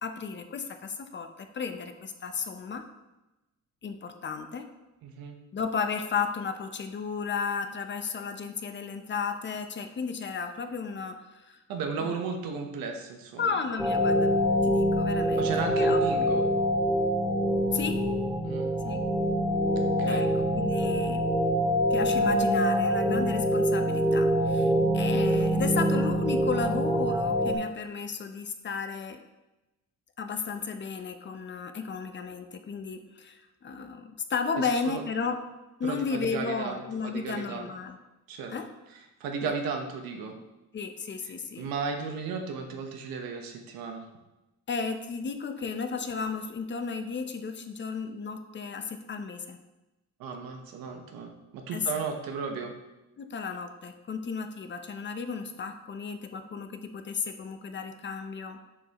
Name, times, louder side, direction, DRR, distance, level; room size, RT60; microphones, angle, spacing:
voice 1, 0.0-2.8 3.8-4.7 5.5-11.6 12.0-12.1 13.4-14.3 14.6-15.5 15.8-16.0 17.7-18.0 18.8-19.0 20.1-21.3 21.9-29.2 30.2-35.4 35.8-38.0 38.5-38.7 39.4-39.5 40.7-41.7 44.7-49.6 51.7-52.0 53.2-58.6, left 5 dB, 35° left, 7 dB, 0.6 m, -34 dB
voice 2, 5.0-5.4 11.7-13.6 15.4-16.5 18.4-19.0 19.7-20.2 34.5-35.0 35.8-37.7 38.3-38.5 39.2-40.3 41.6-44.0 50.2-52.7, right 5 dB, 90° right, 4 dB, 1.0 m, -35 dB
sound 1, 13.8-27.6, equal, 5° right, 0.6 m, -25 dB
7.0 x 5.4 x 2.9 m, 1.0 s
cardioid pair, 110°, 34 cm